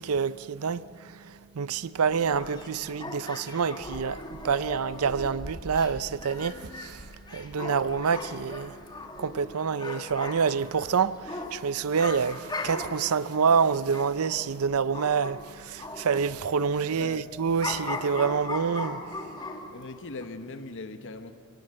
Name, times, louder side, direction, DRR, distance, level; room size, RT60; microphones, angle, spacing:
voice 1, 0.0-8.8 9.2-19.2, right 6 dB, 70° right, 0.5 m, -27 dB
sound 1, 2.0-15.4 15.8-19.8 20.2-20.3, left 2 dB, 20° left, 1.9 m, -39 dB
voice 2, 17.0-17.3 19.7-21.3, left 3 dB, 60° left, 1.2 m, -39 dB
23.5 x 18.5 x 8.0 m
head